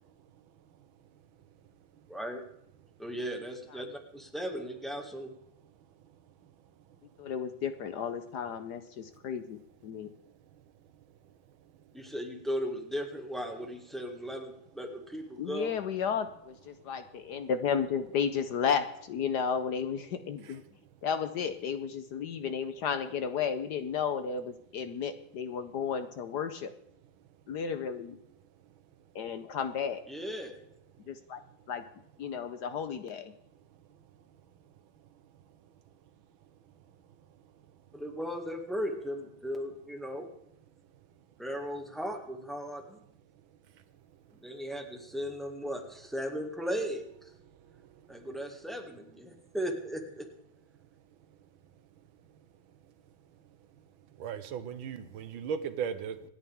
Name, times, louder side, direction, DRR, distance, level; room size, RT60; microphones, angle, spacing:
voice 1, 2.1-2.4 3.0-5.3 11.9-15.7 30.1-30.5 37.9-40.3 41.4-43.0 44.3-47.3 48.1-50.3, equal, ahead, 2 dB, 1.8 m, -37 dB
voice 2, 7.2-10.1 15.4-20.6 21.0-26.7 27.5-28.2 29.1-30.0 31.1-31.4 31.7-31.8 32.2-33.3, left 7 dB, 65° left, 10 dB, 1.2 m, -33 dB
voice 3, 54.2-56.3, right 7 dB, 85° right, 11 dB, 1.7 m, -36 dB
26.0 x 10.0 x 3.6 m, 0.78 s
omnidirectional pair, 2.2 m